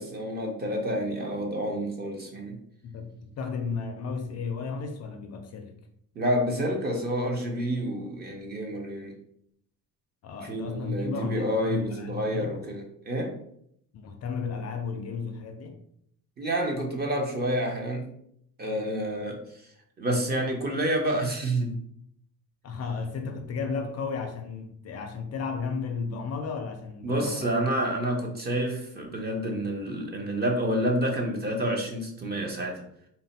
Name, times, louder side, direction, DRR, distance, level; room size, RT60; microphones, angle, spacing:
voice 1, 0.0-2.5 6.2-9.1 10.4-13.3 16.4-18.0 18.6-19.7 20.0-21.8 27.0-32.8, right 1 dB, 25° right, 0.6 m, -29 dB
voice 2, 2.8-5.7 10.2-12.7 13.9-15.8 22.6-27.5, left 5 dB, 45° left, 0.4 m, -34 dB
4.0 x 2.1 x 4.0 m
cardioid pair, 165°, 38 cm